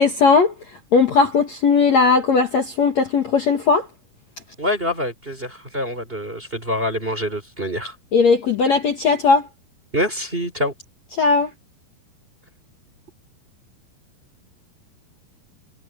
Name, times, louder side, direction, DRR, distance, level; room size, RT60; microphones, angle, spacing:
voice 1, 0.0-3.9 8.1-9.5 11.1-11.5, left 4 dB, 50° left, 2.5 m, -18 dB
voice 2, 4.6-7.9 9.9-10.7, equal, 15° right, 3.3 m, -25 dB
omnidirectional pair, 4.8 m